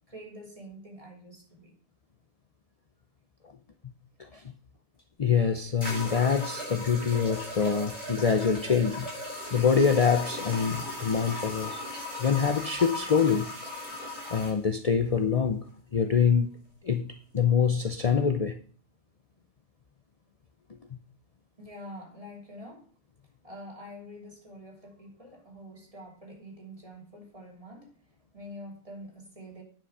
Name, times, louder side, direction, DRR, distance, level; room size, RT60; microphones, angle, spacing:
voice 1, 0.1-1.8 21.6-22.9 23.4-28.1 28.3-29.6, equal, 20° right, 3.2 m, -46 dB
sound 1, 5.0-5.1 5.8-14.6, left 1 dB, 30° left, 4.8 m, -37 dB
voice 2, 5.2-9.1 9.5-11.8 12.2-13.5 14.3-15.6 15.9-16.5 16.8-18.5, left 6 dB, 45° left, 0.5 m, -25 dB
9.9 x 6.1 x 4.7 m
omnidirectional pair, 1.6 m